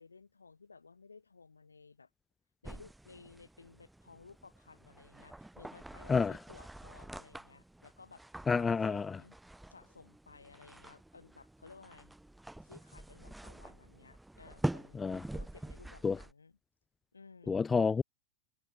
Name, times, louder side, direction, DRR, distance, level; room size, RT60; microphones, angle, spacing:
voice 1, 0.0-2.1 2.6-8.3 8.5-9.4 9.7-12.2 12.6-15.0 15.3-16.6 17.1-17.6, left 4 dB, 75° left, 7.6 m, -57 dB
sound 1, 2.6-16.3, right 1 dB, 5° right, 0.7 m, -45 dB
voice 2, 8.5-9.1 15.0-15.2 16.0-16.2 17.5-18.0, left 5 dB, 15° left, 0.3 m, -28 dB
figure-of-eight pair, 90°, 0 cm